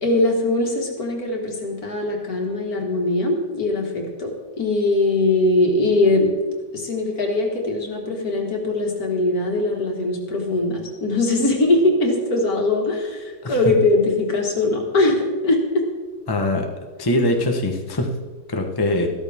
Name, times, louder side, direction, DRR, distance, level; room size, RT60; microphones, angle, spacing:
voice 1, 0.0-6.3 6.7-15.9, left 2 dB, 55° left, 1 dB, 2.4 m, -21 dB
voice 2, 16.3-16.7 17.0-18.1 18.5-19.1, left 1 dB, 15° left, 2 dB, 0.8 m, -22 dB
14.0 x 13.0 x 3.6 m, 1.3 s
omnidirectional pair, 2.0 m